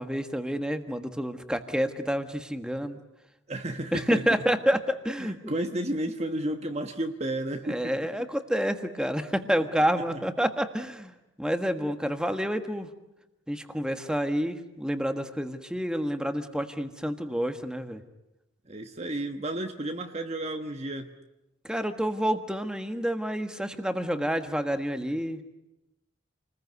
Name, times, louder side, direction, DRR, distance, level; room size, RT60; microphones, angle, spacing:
voice 1, 0.0-3.0 3.9-5.6 7.6-12.9 13.5-18.0 21.6-25.4, equal, 5° right, 7 dB, 1.5 m, -29 dB
voice 2, 3.5-4.2 5.2-7.9 18.7-21.1, right 1 dB, 30° right, 5 dB, 1.2 m, -32 dB
29.0 x 20.5 x 9.5 m, 0.96 s
head